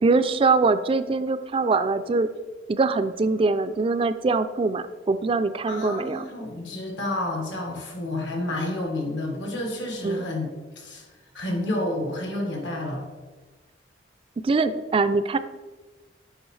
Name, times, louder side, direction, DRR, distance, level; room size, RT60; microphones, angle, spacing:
voice 1, 0.0-2.3 2.7-6.2 10.0-10.2 14.4-15.4, right 3 dB, 30° right, 11 dB, 0.3 m, -23 dB
voice 2, 5.7-10.5 10.7-11.1 11.3-13.0, left 1 dB, 80° left, 1 dB, 1.5 m, -30 dB
9.0 x 5.3 x 3.2 m, 1.3 s
head